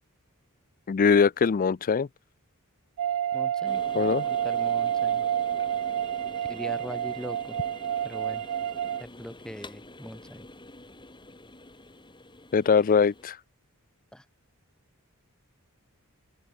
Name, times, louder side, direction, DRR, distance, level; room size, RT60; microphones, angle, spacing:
voice 1, 0.9-2.1 4.0-4.3 12.5-13.4, left 6 dB, 40° left, 0.4 m, -22 dB
sound 1, 3.0-9.0, right 10 dB, 75° right, 0.3 m, -29 dB
voice 2, 3.3-5.2 6.5-7.6 8.0-8.4 9.0-10.5 14.1-14.2, equal, 5° left, 1.4 m, -41 dB
sound 2, 3.6-13.2, left 2 dB, 20° left, 7.6 m, -47 dB
open air
head